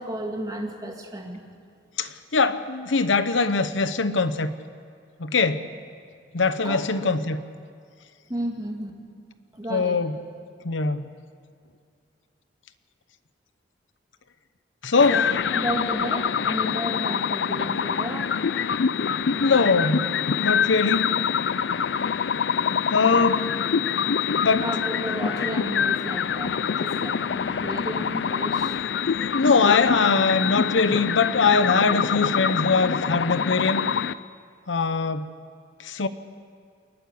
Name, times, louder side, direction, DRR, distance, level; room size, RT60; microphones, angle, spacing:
voice 1, 0.0-1.4 6.6-6.8 8.3-8.9 9.5-10.0 15.1-15.3 15.5-18.4 24.6-28.8, right 1 dB, 20° right, 1 dB, 2.1 m, -33 dB
voice 2, 2.0-4.5 5.2-5.6 6.3-7.4 9.7-10.1 10.6-11.1 14.8-15.3 19.4-20.1 20.4-21.1 22.9-23.5 24.4-24.7 28.6-28.8 29.3-33.9 34.7-35.3 35.8-36.1, left 4 dB, 80° left, 12 dB, 0.8 m, -22 dB
sound 1, 15.0-34.1, left 7 dB, 65° left, 0.4 m, -25 dB
28.5 x 9.6 x 9.5 m, 2.2 s
head